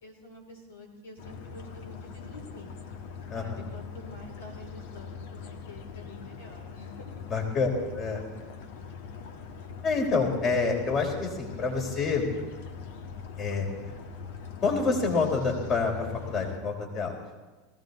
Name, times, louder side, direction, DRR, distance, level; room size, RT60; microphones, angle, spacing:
voice 1, 0.0-2.7 3.3-7.1, left 2 dB, 85° left, 2 dB, 3.8 m, -47 dB
sound 1, 1.2-16.6, left 6 dB, 70° left, 1.4 m, -42 dB
voice 2, 3.3-3.6 7.3-7.7 7.9-8.2 9.8-12.2 13.4-13.7 14.6-15.9 16.3-17.1, left 4 dB, 40° left, 1 dB, 4.1 m, -27 dB
19.5 x 16.0 x 4.2 m, 1.2 s
hypercardioid pair, 90°, 0 cm